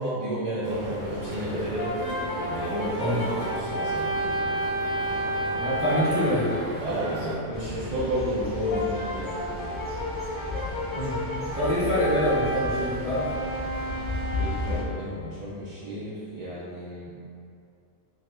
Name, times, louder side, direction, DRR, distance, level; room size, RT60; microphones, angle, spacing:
voice 1, 0.0-1.9 2.5-4.1 6.8-9.3 14.3-17.1, equal, 60° right, -10 dB, 0.4 m, -31 dB
sound 1, 0.6-7.4, right 1 dB, 80° right, 0.9 m, -36 dB
Brass instrument, 1.8-6.3 8.7-15.0, right 1 dB, 70° left, 0.9 m, -31 dB
voice 2, 5.5-6.5 10.9-11.2 11.5-13.3, equal, 5° right, -12 dB, 0.8 m, -25 dB
sound 2, 7.5-14.8, left 2 dB, 20° left, 0.4 m, -35 dB
2.9 x 2.4 x 3.3 m, 2.4 s
omnidirectional pair, 1.3 m